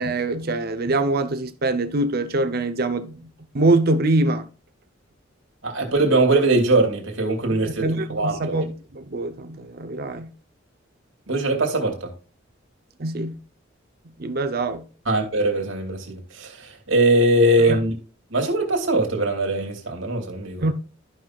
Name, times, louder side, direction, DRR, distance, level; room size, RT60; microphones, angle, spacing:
voice 1, 0.0-3.3 3.5-4.5 7.5-10.3 13.0-13.4 14.2-14.9 17.7-17.8 20.6-20.7, right 2 dB, 50° right, 0.7 m, -24 dB
voice 2, 5.6-8.6 11.3-12.1 15.1-17.9 18.3-20.6, right 2 dB, 70° right, 2.4 m, -21 dB
13.5 x 5.9 x 2.4 m
head